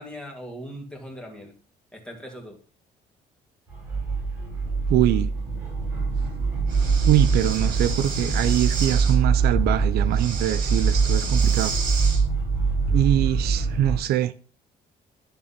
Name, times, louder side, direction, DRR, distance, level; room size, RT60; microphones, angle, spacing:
voice 1, 0.0-1.5 1.9-2.6, equal, 5° left, 2.2 m, -39 dB
sound 1, 3.7-14.0, right 5 dB, 15° right, 5.0 m, -23 dB
voice 2, 4.9-5.3 7.1-11.8 12.9-14.3, right 13 dB, 70° right, 0.5 m, -23 dB
Breathing, 6.7-9.2 10.1-12.2, right 5 dB, 50° right, 2.4 m, -33 dB
11.0 x 3.7 x 5.6 m
cardioid pair, 110°, 17 cm